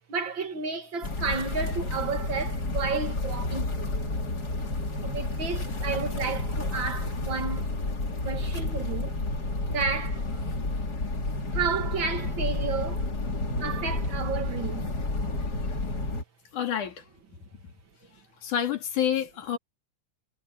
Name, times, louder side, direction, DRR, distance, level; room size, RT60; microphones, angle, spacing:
voice 1, 0.1-4.1 5.0-7.7 8.2-9.1 9.7-10.2 11.5-13.1 13.6-14.9, right 5 dB, 40° right, 2.4 m, -32 dB
sound 1, 1.0-16.2, left 2 dB, 30° left, 3.3 m, -30 dB
voice 2, 15.4-15.8 16.5-17.0 18.4-19.6, left 9 dB, 75° left, 4.1 m, -29 dB
omnidirectional pair, 3.6 m